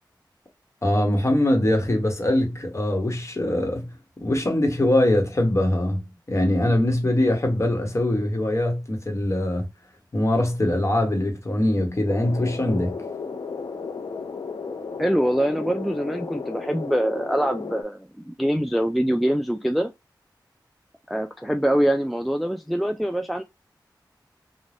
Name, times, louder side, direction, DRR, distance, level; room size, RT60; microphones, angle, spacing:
voice 1, 0.8-6.0 6.3-9.6 10.1-13.0, left 1 dB, 40° left, 1.0 m, -22 dB
sound 1, 12.1-17.8, left 4 dB, 75° left, 0.6 m, -34 dB
voice 2, 15.0-19.9 21.1-23.4, equal, ahead, 0.3 m, -24 dB
2.5 x 2.1 x 3.3 m
wide cardioid pair, 70°, 8 cm